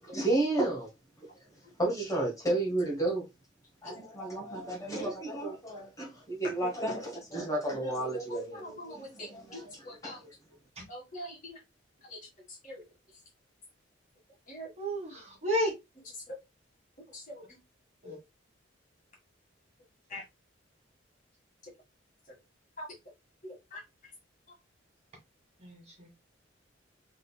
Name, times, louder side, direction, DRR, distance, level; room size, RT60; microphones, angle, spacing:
voice 1, 0.1-0.9 1.8-3.3 3.8-10.2, right 2 dB, 20° left, 1.5 m, -32 dB
voice 2, 8.3-10.3 10.9-11.6 12.1-12.2 12.6-12.8 14.5-14.7 16.3-16.4 17.1-17.4 20.1-20.2 22.8-22.9 23.4-23.8, left 1 dB, 40° left, 1.8 m, -43 dB
voice 3, 14.8-15.7 18.0-18.2 25.6-26.2, equal, 35° right, 1.9 m, -32 dB
3.8 x 3.5 x 2.3 m
head